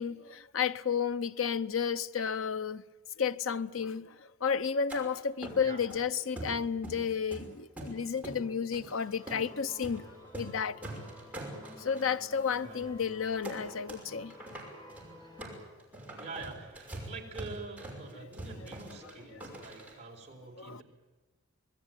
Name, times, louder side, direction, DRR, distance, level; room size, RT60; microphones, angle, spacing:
voice 1, 0.0-2.8 3.2-10.1 10.3-10.8 11.8-14.3 18.6-18.7 20.6-20.8, left 6 dB, 75° left, 0.7 m, -32 dB
sound 1, 4.9-5.0 5.4-6.0 6.4-7.1 7.3-8.4 8.7-8.9 9.3-9.5 9.8-10.0 10.3-10.6 10.8-12.1 12.5-12.6 12.8-13.0 13.4-14.0 14.3-19.9, right 1 dB, 10° right, 5.7 m, -43 dB
sound 2, 8.8-15.5, left 1 dB, 20° left, 7.1 m, -52 dB
voice 2, 12.6-13.0 15.6-15.8 16.2-20.8, right 3 dB, 35° right, 4.1 m, -46 dB
25.5 x 19.5 x 9.1 m
head